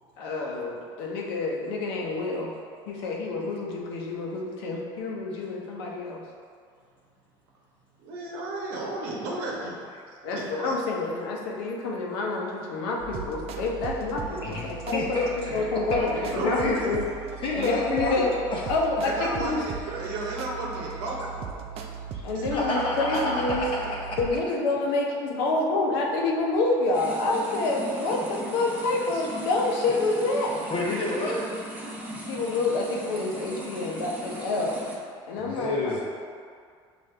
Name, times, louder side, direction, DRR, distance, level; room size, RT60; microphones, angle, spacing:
voice 1, 0.2-2.5 2.9-6.2 10.2-15.2 15.5-17.0 17.5-18.3 18.7-19.6 22.2-23.6 24.2-30.6 32.3-34.7 35.3-36.0, left 3 dB, 85° left, -1 dB, 0.7 m, -28 dB
voice 2, 8.0-9.9 10.2-10.8 16.0-17.0 19.0-21.6 22.3-22.4 23.3-23.4, right 2 dB, 80° right, -3 dB, 0.8 m, -33 dB
sound 1, 13.0-24.4, right 6 dB, 55° right, 0.4 m, -38 dB
voice 3, 14.9-15.6 15.9-16.8 17.4-18.6 22.5-23.7 24.1-24.2 30.7-31.4 35.4-36.0, left 2 dB, 45° left, -5 dB, 0.7 m, -29 dB
sound 2, 26.9-35.0, right 1 dB, 15° right, 0.8 m, -39 dB
5.7 x 2.6 x 3.2 m, 2.2 s
supercardioid pair, 100°, 12 cm